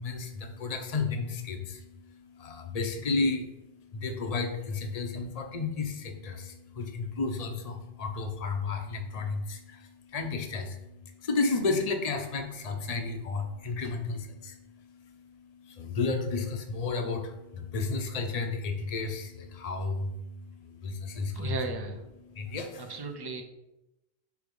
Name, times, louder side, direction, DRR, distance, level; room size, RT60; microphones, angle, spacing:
voice 1, 0.0-21.6 22.3-22.9, left 3 dB, 40° left, 5 dB, 0.8 m, -33 dB
voice 2, 21.3-22.0 22.8-23.4, right 4 dB, 30° right, 5 dB, 0.6 m, -35 dB
4.9 x 4.7 x 5.3 m, 0.93 s
omnidirectional pair, 1.0 m